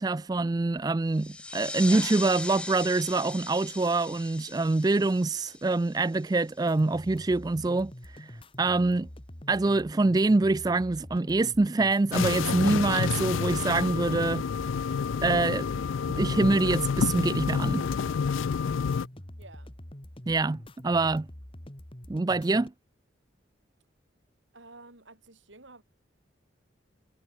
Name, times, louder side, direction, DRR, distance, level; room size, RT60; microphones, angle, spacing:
voice 1, 0.0-7.9 8.2-8.3 8.6-9.1 9.5-14.4 15.2-15.7 16.1-17.8 20.3-21.3 22.1-22.7, right 3 dB, 20° right, 0.3 m, -25 dB
sound 1, 1.1-6.4, left 2 dB, 5° left, 0.8 m, -39 dB
sound 2, 6.7-22.7, left 1 dB, 25° left, 2.1 m, -46 dB
sound 3, 12.1-19.1, left 6 dB, 90° left, 0.4 m, -29 dB
voice 2, 19.4-19.7 24.5-25.8, right 2 dB, 75° right, 5.0 m, -51 dB
head